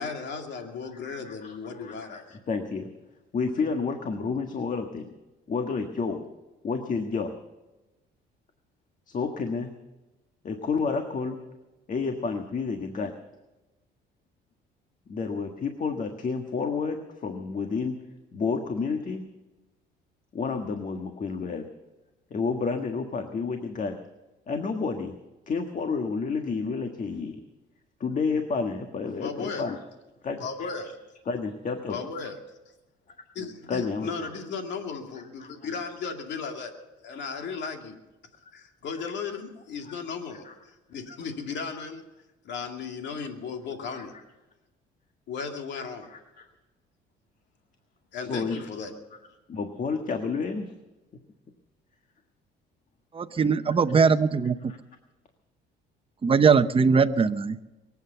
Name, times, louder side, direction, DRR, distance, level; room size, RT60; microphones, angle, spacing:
voice 1, 0.0-2.4 29.2-29.7 30.4-30.9 31.9-32.3 33.3-36.7 37.0-38.0 38.5-42.0 42.4-44.1 45.3-46.1 48.1-48.9, left 5 dB, 65° left, 4 dB, 2.4 m, -35 dB
voice 2, 1.1-2.9 3.3-5.1 5.5-6.2 6.6-7.3 9.1-9.7 10.4-11.4 11.9-13.1 15.1-18.0 18.3-19.2 20.3-21.7 22.3-24.0 24.5-25.1 25.5-27.4 28.0-29.8 30.2-30.9 31.3-32.0 33.7-34.3 35.4-35.5 37.1-37.2 38.4-38.5 39.8-40.0 40.4-40.5 43.9-44.0 45.7-46.4 48.3-48.6 49.5-50.7 51.1-51.2 53.3-53.8 54.7-54.8, left 4 dB, 40° left, 5 dB, 1.6 m, -30 dB
voice 3, 53.1-54.6 56.2-57.6, right 5 dB, 30° right, 11 dB, 0.8 m, -21 dB
23.0 x 8.6 x 6.9 m, 1.1 s
cardioid pair, 90°, 20 cm